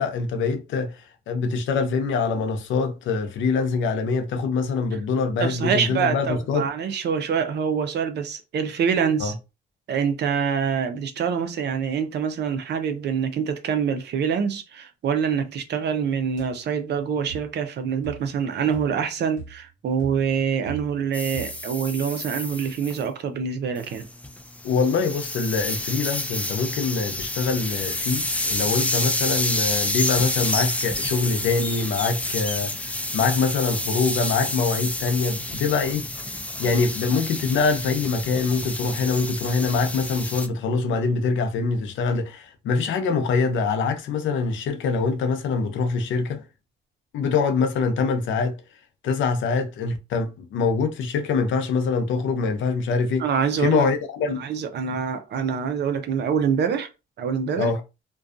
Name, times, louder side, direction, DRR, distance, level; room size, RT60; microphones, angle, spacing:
voice 1, 0.0-6.7 9.2-9.3 24.6-36.1 36.6-46.4 47.1-48.6 49.0-53.2 53.6-54.4 57.6-57.8, left 4 dB, 75° left, 0.6 m, -24 dB
voice 2, 5.4-9.3 9.9-24.0 53.2-53.9 54.3-56.9 57.2-57.7, right 7 dB, 60° right, 0.6 m, -25 dB
sound 1, 16.4-16.5 17.3-17.6 18.0-18.4 18.7-19.1 19.4-19.7 20.0-21.1 21.3-21.7, right 9 dB, 40° right, 1.1 m, -40 dB
sound 2, 21.1-23.0 23.8-40.5, left 1 dB, 5° left, 0.3 m, -29 dB
2.5 x 2.3 x 2.4 m
cardioid pair, 90°, 20 cm